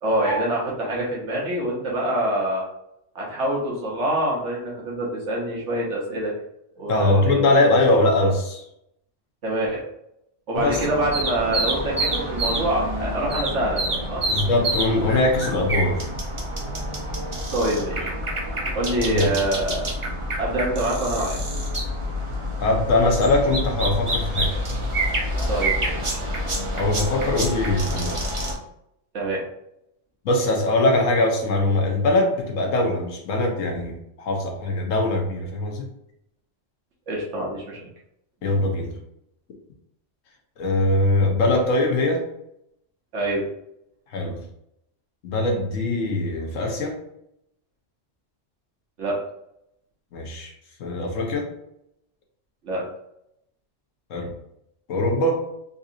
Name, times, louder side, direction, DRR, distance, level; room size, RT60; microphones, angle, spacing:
voice 1, 0.0-2.6 3.1-6.3 6.8-7.6 9.4-9.8 10.5-14.2 17.5-18.1 18.7-19.9 20.3-21.4 25.5-26.2 29.1-29.4 37.1-37.9 43.1-43.4 49.0-49.2 52.6-52.8, right 1 dB, 70° right, -3 dB, 1.3 m, -25 dB
voice 2, 6.9-8.6 10.5-10.8 14.3-16.1 19.1-19.3 22.6-24.6 26.7-28.2 30.2-35.9 38.4-38.9 40.6-42.3 44.1-44.4 45.2-47.0 50.1-50.5 50.8-51.5 54.1-54.3 54.9-55.4, left 2 dB, 85° left, 1 dB, 1.2 m, -22 dB
sound 1, 10.5-28.5, right 1 dB, 35° right, 0.6 m, -27 dB
3.9 x 2.7 x 2.5 m, 0.79 s
omnidirectional pair, 1.3 m